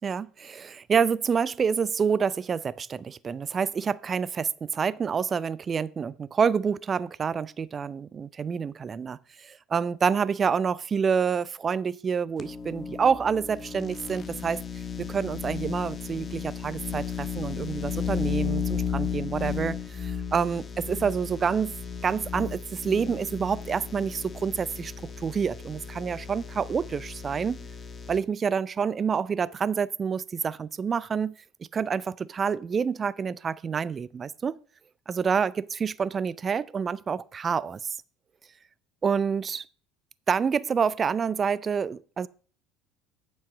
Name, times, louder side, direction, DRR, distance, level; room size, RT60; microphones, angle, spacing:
voice 1, 0.0-14.6 15.0-21.7 22.0-24.9 25.2-27.6 28.1-31.3 31.7-34.6 35.1-37.8 39.0-39.6 40.3-42.3, right 6 dB, 35° right, 0.4 m, -28 dB
sound 1, 12.4-28.2, left 7 dB, 30° left, 1.2 m, -34 dB
8.6 x 7.1 x 5.1 m
hypercardioid pair, 65°, 0 cm